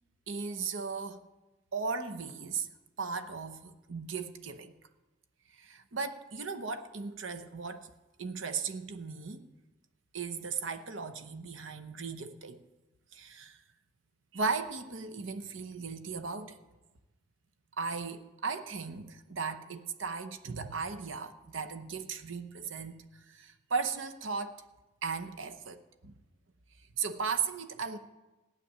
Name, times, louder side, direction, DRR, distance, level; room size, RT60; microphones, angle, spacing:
voice 1, 0.3-1.3 1.7-2.7 3.0-4.7 5.5-7.9 8.2-9.5 10.1-12.6 13.1-13.6 14.3-16.6 17.8-24.6 25.0-26.1 26.9-28.0, right 5 dB, 70° right, 10 dB, 0.9 m, -37 dB
15.0 x 6.8 x 10.0 m, 1.1 s
head